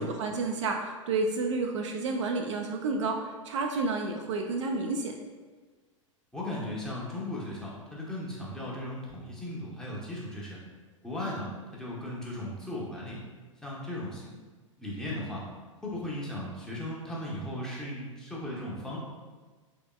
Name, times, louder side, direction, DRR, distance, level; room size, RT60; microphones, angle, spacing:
voice 1, 0.0-5.1, right 3 dB, 60° right, 2 dB, 0.4 m, -30 dB
voice 2, 6.3-10.6 11.0-11.5 11.7-13.2 13.6-14.3 14.8-15.4 15.8-19.0, left 1 dB, 5° left, -5 dB, 0.8 m, -36 dB
3.7 x 3.3 x 2.2 m, 1.4 s
figure-of-eight pair, 100°, 17 cm